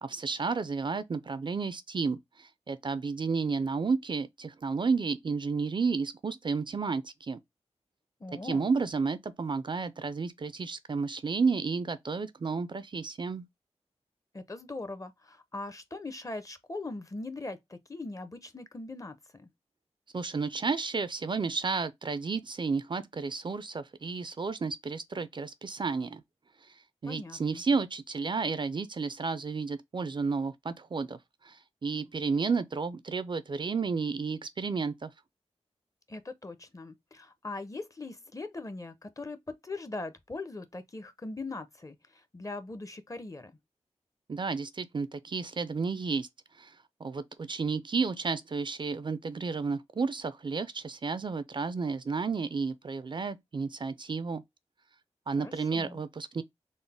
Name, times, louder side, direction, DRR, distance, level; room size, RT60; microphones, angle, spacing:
voice 1, 0.0-7.4 8.3-13.4 20.1-26.2 27.0-35.1 44.3-46.3 46.6-46.8 47.0-54.4 55.3-56.4, right 4 dB, 45° right, 0.4 m, -32 dB
voice 2, 8.2-8.7 14.3-19.5 27.0-27.6 36.1-39.4 39.6-42.0 42.3-43.5 55.4-56.0, left 2 dB, 30° left, 0.6 m, -40 dB
3.9 x 2.0 x 3.3 m
wide cardioid pair, 75°, 12 cm